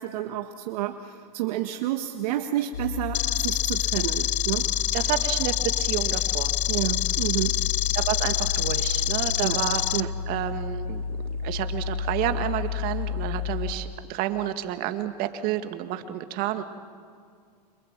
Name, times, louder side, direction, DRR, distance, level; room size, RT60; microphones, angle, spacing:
voice 1, 0.0-4.7 6.7-7.6 9.4-9.6 9.9-10.1, right 13 dB, 65° right, 5 dB, 1.5 m, -30 dB
sound 1, 2.7-13.7, left 7 dB, 85° left, 2.1 m, -31 dB
sound 2, 3.1-10.0, left 16 dB, 35° left, 0.7 m, -27 dB
voice 2, 4.9-6.5 7.9-9.8 10.3-11.0 11.4-16.6, right 12 dB, 45° right, 8 dB, 2.0 m, -30 dB
29.5 x 27.0 x 7.5 m, 2.2 s
hypercardioid pair, 120°, 21 cm